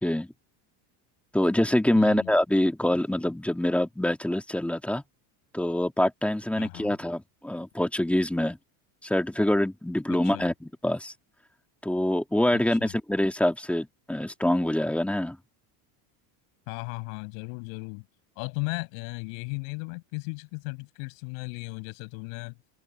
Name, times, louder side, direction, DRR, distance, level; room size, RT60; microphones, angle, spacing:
voice 1, 0.0-0.3 1.3-5.0 5.5-8.6 9.0-11.1 11.8-15.4, left 1 dB, 5° left, 2.1 m, -25 dB
voice 2, 2.0-2.3 6.6-7.0 10.1-10.5 12.8-12.9 16.7-18.1 18.4-22.6, left 39 dB, 75° left, 7.0 m, -36 dB
open air
cardioid pair, 150°, 47 cm